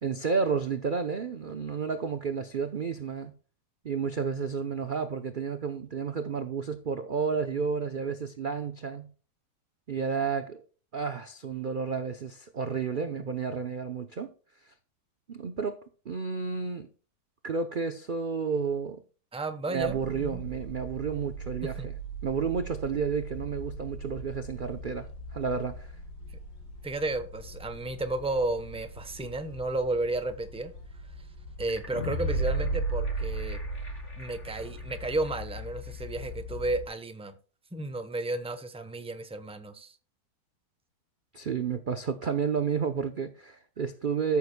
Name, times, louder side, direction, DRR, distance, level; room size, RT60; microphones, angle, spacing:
voice 1, 0.0-3.3 3.8-9.1 9.9-10.6 10.9-14.3 14.6-14.7 15.3-15.8 16.1-16.9 17.4-19.0 19.7-21.9 22.2-25.9 41.3-44.4, right 5 dB, 70° right, 0.4 m, -31 dB
voice 2, 19.3-20.4 21.6-21.9 26.8-30.7 31.6-33.6 34.2-37.3 37.7-40.0, right 2 dB, 10° right, 0.4 m, -33 dB
sound 1, 19.8-36.9, equal, 70° left, 2.2 m, -42 dB
sound 2, 31.7-34.6 34.9-35.0, right 3 dB, 45° left, 2.3 m, -31 dB
14.0 x 7.0 x 2.2 m
omnidirectional pair, 1.9 m